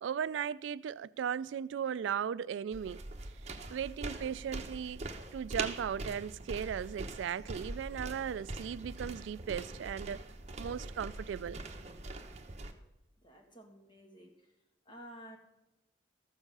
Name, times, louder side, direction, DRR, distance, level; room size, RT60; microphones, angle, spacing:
voice 1, 0.0-3.0 3.7-5.0 5.3-10.2 10.6-11.6, right 8 dB, 80° right, 0.3 m, -37 dB
sound 1, 2.7-12.7, right 2 dB, 35° right, 1.0 m, -43 dB
voice 2, 13.2-14.3 14.9-15.4, equal, 25° left, 1.8 m, -52 dB
14.0 x 7.2 x 5.4 m
head